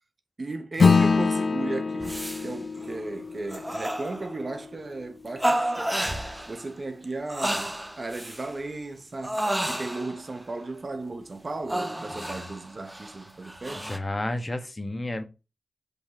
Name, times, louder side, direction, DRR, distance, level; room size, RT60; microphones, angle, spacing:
voice 1, 0.4-5.9 6.5-13.9, right 2 dB, 45° right, 1.0 m, -35 dB
Acoustic guitar / Strum, 0.8-5.6, left 4 dB, 55° left, 0.4 m, -25 dB
sound 1, 2.0-2.5 2.8-3.2 3.5-4.5 5.4-6.7 7.0-8.5 9.2-10.3 11.7-14.0, right 1 dB, 15° right, 0.9 m, -31 dB
voice 2, 12.1-12.4 13.7-15.2, left 1 dB, 25° left, 1.1 m, -32 dB
5.5 x 4.3 x 5.8 m
wide cardioid pair, 110°, 0 cm